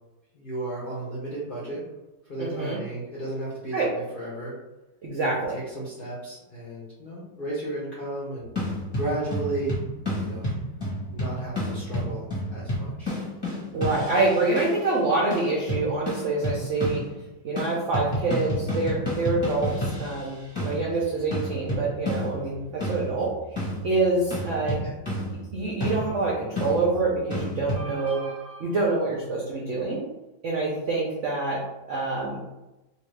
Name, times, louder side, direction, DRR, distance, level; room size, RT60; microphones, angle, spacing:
voice 1, 0.3-1.8 2.2-4.6 5.2-5.3 5.5-8.5 8.9-9.8 10.2-10.5 11.1-13.1 14.1-14.3 24.8-24.9, right 2 dB, 65° left, -7 dB, 0.5 m, -34 dB
voice 2, 2.4-2.8 3.7-3.9 5.0-5.6 13.7-17.0 17.4-24.8 25.5-30.0 30.4-31.6 31.9-32.4, right 3 dB, 75° right, -3 dB, 0.7 m, -26 dB
sound 1, 8.6-14.9 15.3-17.3 17.6-27.8, equal, 20° left, 0.8 m, -31 dB
2.8 x 2.6 x 3.2 m, 1.0 s
omnidirectional pair, 2.0 m